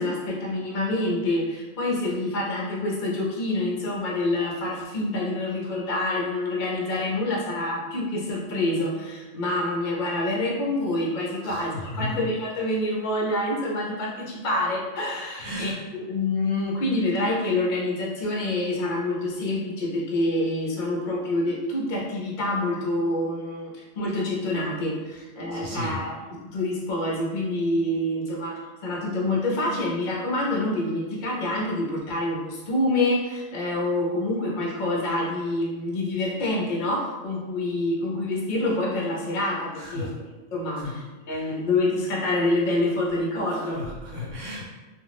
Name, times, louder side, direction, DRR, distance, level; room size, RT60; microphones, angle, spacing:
voice 1, 0.0-26.2 26.4-40.1 40.5-40.8 41.3-43.9, left 1 dB, 50° left, -3 dB, 0.6 m, -27 dB
voice 2, 11.4-12.2 15.4-15.8 25.5-26.0 39.8-40.1 40.8-40.9 41.3-41.5 43.5-44.7, left 1 dB, 70° right, -4 dB, 0.9 m, -34 dB
2.4 x 2.3 x 3.3 m, 1.2 s
omnidirectional pair, 1.4 m